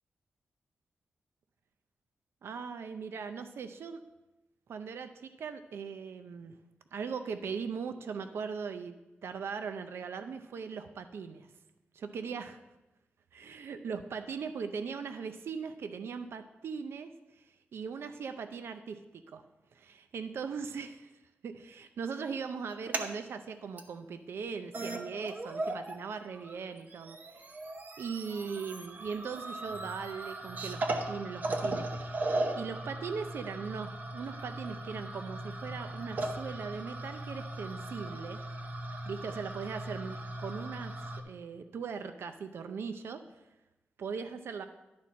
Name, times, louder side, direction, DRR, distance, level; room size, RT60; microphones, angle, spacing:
voice 1, 2.4-4.0 4.7-6.6 6.9-8.9 9.2-11.5 11.9-12.6 13.3-19.4 19.7-27.6 28.0-38.4 39.1-43.4 44.0-44.7, right 6 dB, 75° right, 9 dB, 0.5 m, -40 dB
sound 1, 22.7-23.1 23.8-23.9 24.4-24.5 24.7-26.0 26.3-41.2, right 2 dB, 45° right, 0.7 m, -38 dB
11.5 x 4.3 x 6.1 m, 1.0 s
wide cardioid pair, 175°, 4 cm